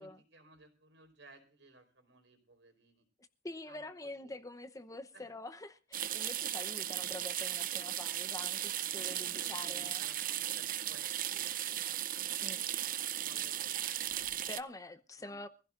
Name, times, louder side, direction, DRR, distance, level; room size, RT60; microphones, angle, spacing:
voice 1, 0.0-3.0 3.7-4.4 5.1-5.2 7.0-7.2 8.9-12.3 12.9-14.5 15.2-15.4, right 2 dB, 80° right, 4.8 m, -60 dB
voice 2, 3.4-10.0 12.4-12.6 14.5-15.5, left 2 dB, 20° left, 0.8 m, -46 dB
sound 1, 5.9-14.6, right 11 dB, 50° right, 0.7 m, -36 dB
24.5 x 15.5 x 2.5 m
head